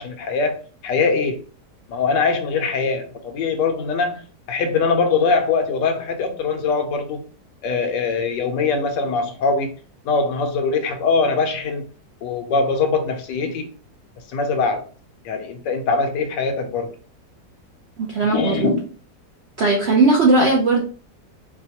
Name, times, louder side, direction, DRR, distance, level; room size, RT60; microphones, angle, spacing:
voice 1, 0.0-1.4 1.9-4.2 4.5-7.2 7.6-9.7 10.0-11.9 12.2-13.7 14.3-14.8 15.2-16.9 18.3-18.8, left 4 dB, 85° left, 1.3 m, -22 dB
voice 2, 18.0-18.7 19.6-20.8, right 3 dB, 65° right, 0.6 m, -17 dB
4.6 x 2.2 x 2.8 m
omnidirectional pair, 1.9 m